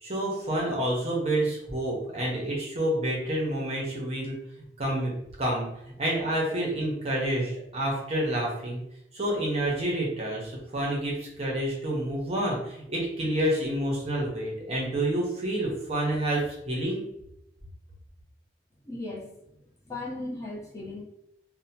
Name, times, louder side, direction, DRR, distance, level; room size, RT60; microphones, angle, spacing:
voice 1, 0.0-4.4 4.8-5.1 5.4-5.7 6.0-8.8 9.1-17.0, right 1 dB, 35° right, -3 dB, 0.7 m, -28 dB
voice 2, 18.8-19.3 19.9-21.0, left 2 dB, 20° left, -6 dB, 0.7 m, -36 dB
2.7 x 2.1 x 2.8 m, 0.82 s
head